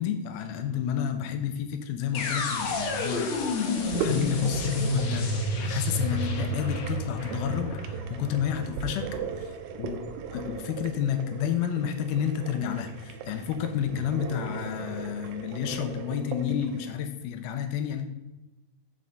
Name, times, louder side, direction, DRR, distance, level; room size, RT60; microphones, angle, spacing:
voice 1, 0.0-3.3 3.9-5.3 5.6-9.1 9.4-10.0 10.3-18.1, left 9 dB, 85° left, 7 dB, 2.2 m, -30 dB
sound 1, 2.1-10.1, left 2 dB, 70° left, 1.6 m, -30 dB
sound 2, 3.8-16.9, right 6 dB, 80° right, 2.3 m, -38 dB
8.9 x 7.5 x 3.9 m, 1.0 s
omnidirectional pair, 5.0 m